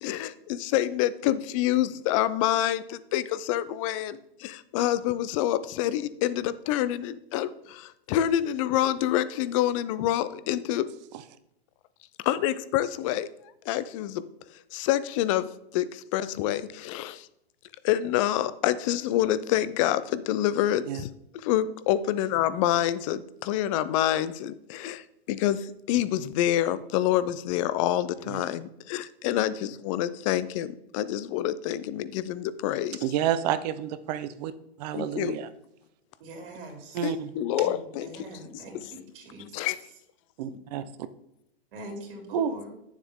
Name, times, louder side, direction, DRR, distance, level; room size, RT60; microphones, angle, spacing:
voice 1, 0.0-10.9 12.2-13.3 13.7-14.2 14.7-17.3 17.8-21.1 21.3-33.0 34.9-35.4 37.0-38.9 39.5-39.7, left 12 dB, 30° left, 16 dB, 0.5 m, -27 dB
voice 2, 33.0-34.5 34.8-35.5 36.9-37.3 40.4-40.8 42.3-42.5, right 10 dB, 40° right, 13 dB, 0.7 m, -29 dB
voice 3, 36.2-37.1 37.5-39.0 39.3-39.4 41.7-42.7, right 1 dB, 55° right, 1 dB, 3.1 m, -43 dB
9.3 x 7.2 x 3.6 m, 0.83 s
hypercardioid pair, 135°, 31 cm